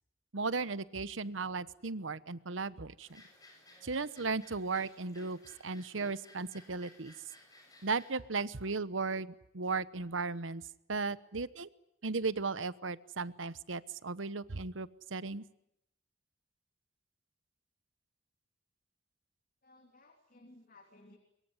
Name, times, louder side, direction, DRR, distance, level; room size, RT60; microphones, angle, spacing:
voice 1, 0.3-3.2 3.8-7.1 7.8-10.6 10.9-11.7 12.0-15.4, right 4 dB, 85° right, 16 dB, 1.1 m, -36 dB
sound 1, 3.0-8.2, left 2 dB, 20° left, 7.2 m, -59 dB
voice 2, 19.6-21.2, left 2 dB, 50° left, 4 dB, 3.1 m, -59 dB
24.0 x 22.5 x 9.7 m, 0.80 s
head